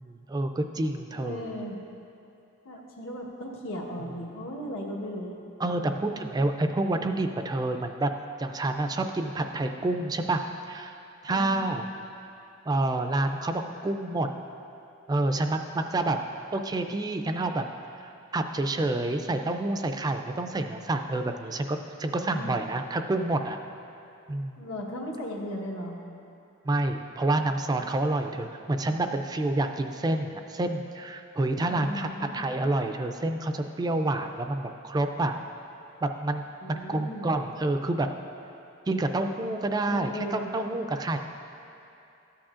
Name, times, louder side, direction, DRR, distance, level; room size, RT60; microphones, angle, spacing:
voice 1, 0.0-1.5 5.6-8.1 8.4-10.4 10.7-10.9 11.2-11.9 12.7-14.3 15.1-16.2 16.5-17.6 18.0-23.6 24.3-24.6 26.7-35.4 36.0-36.4 36.7-38.1 38.9-41.2, right 2 dB, 20° right, 6 dB, 0.3 m, -28 dB
voice 2, 1.1-1.8 2.6-5.4 11.3-11.6 22.3-22.5 24.6-26.0 31.7-32.5 36.6-37.3 39.9-40.5, equal, 80° left, -1 dB, 1.2 m, -36 dB
13.5 x 8.6 x 2.5 m, 2.7 s
head